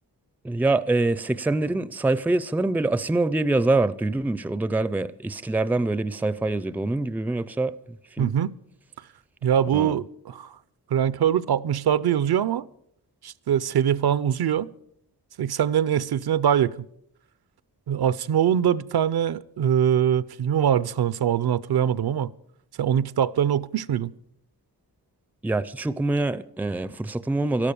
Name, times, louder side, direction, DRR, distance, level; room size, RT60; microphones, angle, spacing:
voice 1, 0.4-8.3 9.7-10.0 25.4-27.7, right 2 dB, 5° right, 0.4 m, -25 dB
voice 2, 8.2-8.5 9.4-10.6 10.9-12.7 13.2-14.7 15.4-16.7 17.9-22.3 22.8-24.1, right 9 dB, 70° right, 0.6 m, -23 dB
13.0 x 12.0 x 6.9 m
wide cardioid pair, 105°, 39 cm